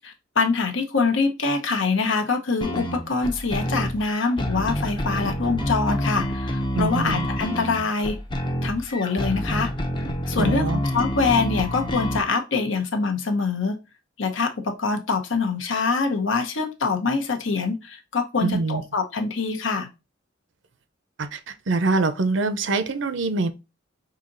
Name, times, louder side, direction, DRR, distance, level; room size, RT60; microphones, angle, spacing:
voice 1, 0.0-8.2 8.6-9.7 10.3-13.8 14.2-19.9, left 4 dB, 75° left, 0.9 m, -24 dB
sound 1, 2.6-12.2, equal, 25° left, 0.6 m, -28 dB
voice 2, 6.8-7.3 10.4-10.8 18.4-18.8 21.2-23.5, right 3 dB, 70° right, 0.5 m, -24 dB
5.7 x 2.8 x 2.5 m
head